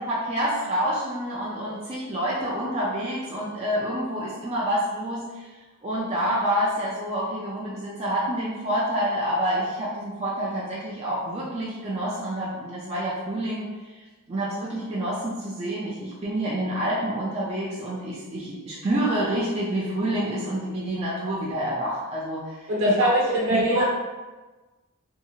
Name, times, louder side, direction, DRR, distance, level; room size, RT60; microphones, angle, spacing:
voice 1, 0.1-5.5 5.8-22.9 23.5-23.8, right 1 dB, 30° right, -7 dB, 0.4 m, -28 dB
voice 2, 22.7-23.8, right 1 dB, 65° right, -4 dB, 0.9 m, -22 dB
2.7 x 2.4 x 2.7 m, 1.2 s
head